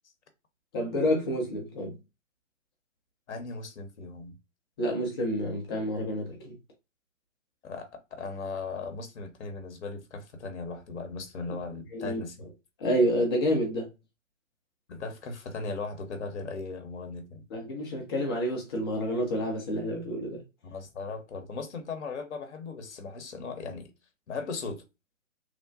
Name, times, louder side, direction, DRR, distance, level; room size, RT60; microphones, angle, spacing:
voice 1, 0.7-2.0 4.8-6.5 11.9-12.2 12.8-13.9 17.5-20.4, equal, 20° left, 0.5 m, -28 dB
voice 2, 3.3-4.3 7.6-7.9 8.2-12.5 14.9-17.4 20.6-23.9 24.3-24.8, left 4 dB, 60° left, 0.9 m, -37 dB
3.2 x 2.1 x 2.5 m
figure-of-eight pair, 125°, 40 cm